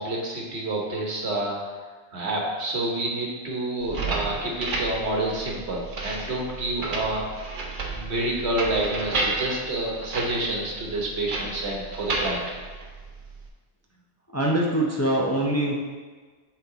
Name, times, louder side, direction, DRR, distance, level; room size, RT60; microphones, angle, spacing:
voice 1, 0.0-1.6 2.1-7.2 7.9-12.5, right 1 dB, 75° right, -2 dB, 1.5 m, -28 dB
sound 1, 3.8-13.5, right 3 dB, 50° right, 0.9 m, -32 dB
voice 2, 14.3-15.8, right 1 dB, 20° left, -2 dB, 0.6 m, -23 dB
7.9 x 4.2 x 4.0 m, 1.4 s
omnidirectional pair, 1.1 m